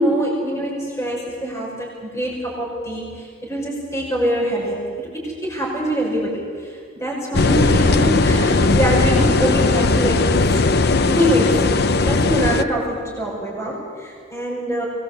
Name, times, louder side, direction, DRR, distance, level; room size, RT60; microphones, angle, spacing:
voice 1, 0.0-10.7 11.1-14.8, equal, 15° left, -5 dB, 5.8 m, -24 dB
sound 1, 7.3-12.6, left 3 dB, 55° left, 0.7 m, -17 dB
23.5 x 20.0 x 8.2 m, 2.1 s
head